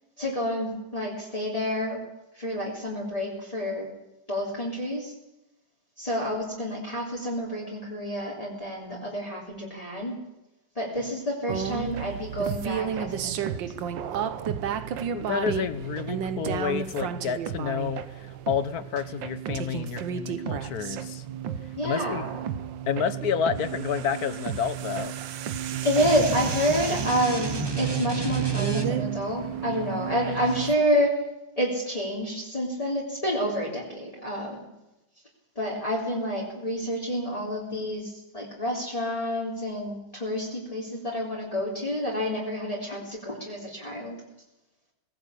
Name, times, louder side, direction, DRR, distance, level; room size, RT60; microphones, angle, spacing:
voice 1, 0.2-2.0 2.3-3.9 4.3-5.1 6.0-10.2 10.8-13.5 21.8-22.3 25.8-31.2 31.6-34.6 35.6-44.2, equal, 20° left, -4 dB, 3.6 m, -29 dB
sound 1, 11.5-30.7, right 9 dB, 90° right, 1.7 m, -32 dB
voice 2, 15.1-21.2 21.8-22.2 22.9-25.1, left 7 dB, 60° left, 14 dB, 1.5 m, -29 dB
sound 2, 26.0-29.2, right 2 dB, 15° right, 1.8 m, -33 dB
19.0 x 17.0 x 8.4 m, 0.95 s
omnidirectional pair, 2.0 m